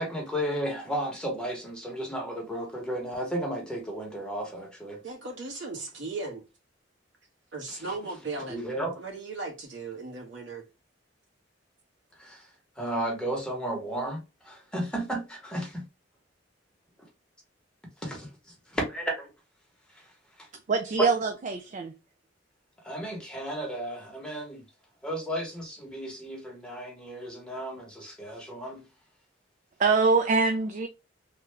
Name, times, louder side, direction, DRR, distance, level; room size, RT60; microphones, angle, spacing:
voice 1, 0.0-5.0 7.7-7.8 8.5-8.9 12.2-12.5 12.8-15.8 18.0-18.3 18.7-19.3 22.8-24.6 25.0-28.8, right 1 dB, 5° left, 1.1 m, -33 dB
voice 2, 5.0-6.4 7.5-8.7 9.0-10.7, right 3 dB, 75° right, 1.5 m, -37 dB
voice 3, 20.7-21.9 29.8-30.9, right 4 dB, 40° right, 0.4 m, -24 dB
3.2 x 2.4 x 3.3 m
head